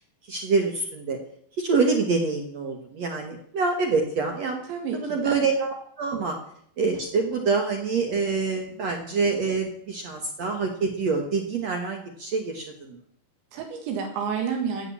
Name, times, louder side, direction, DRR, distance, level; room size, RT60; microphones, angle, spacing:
voice 1, 0.3-1.2 1.6-4.6 5.0-6.3 6.8-13.0, right 4 dB, 65° right, 3 dB, 1.7 m, -26 dB
voice 2, 4.7-5.4 13.5-14.9, right 6 dB, 80° right, 4 dB, 4.0 m, -30 dB
14.5 x 7.3 x 8.6 m, 0.67 s
omnidirectional pair, 5.1 m